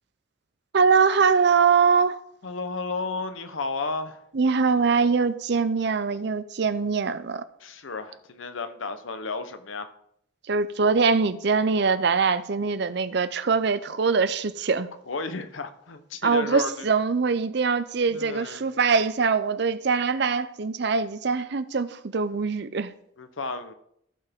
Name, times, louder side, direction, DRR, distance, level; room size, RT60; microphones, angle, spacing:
voice 1, 0.7-2.2 4.3-7.4 10.5-14.9 16.2-22.9, right 5 dB, 60° right, 0.5 m, -23 dB
voice 2, 2.4-4.2 7.6-9.9 15.1-16.9 18.1-18.6 23.2-23.7, left 3 dB, 85° left, 0.9 m, -33 dB
14.5 x 5.7 x 3.6 m
head